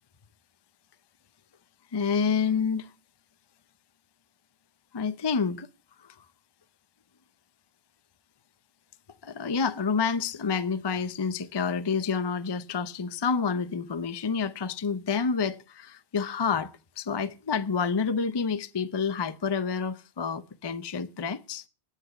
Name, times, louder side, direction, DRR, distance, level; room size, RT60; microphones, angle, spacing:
voice 1, 1.9-2.9 4.9-5.7 6.0-6.1 9.2-21.6, left 5 dB, 30° left, 0.5 m, -28 dB
10.0 x 8.2 x 6.8 m
omnidirectional pair, 1.1 m